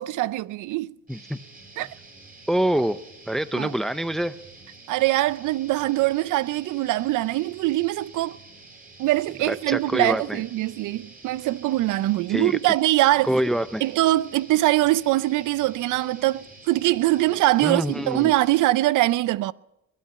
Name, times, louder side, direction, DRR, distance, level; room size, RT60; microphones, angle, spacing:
voice 1, 0.0-0.9 1.8-1.9 3.5-3.7 4.9-8.4 9.0-13.3 13.8-19.5, right 17 dB, 85° right, 0.5 m, -23 dB
sound 1, 1.1-18.6, right 3 dB, 30° right, 5.2 m, -48 dB
voice 2, 2.5-3.0 3.3-4.3 9.5-10.4 12.3-12.6 13.2-13.8 17.6-18.3, right 1 dB, ahead, 0.5 m, -25 dB
22.0 x 8.7 x 7.5 m
cardioid pair, 90°, 30 cm